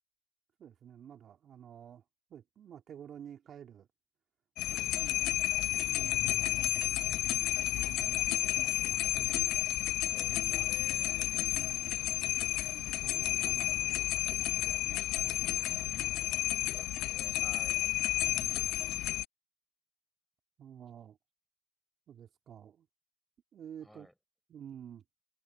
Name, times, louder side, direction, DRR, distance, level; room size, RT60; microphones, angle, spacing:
voice 1, 0.6-2.0 2.3-3.9 4.9-5.2 5.5-9.5 10.3-10.6 11.5-12.0 12.7-16.1 18.3-18.7 20.6-21.2 22.1-22.9 23.5-24.1 24.5-25.0, right 9 dB, 30° right, 2.5 m, -51 dB
sound 1, 4.6-19.3, left 16 dB, 45° left, 0.3 m, -31 dB
voice 2, 4.6-5.1 10.1-11.4 16.7-17.8 23.8-24.1, equal, ahead, 4.7 m, -55 dB
supercardioid pair, 120°, 0 cm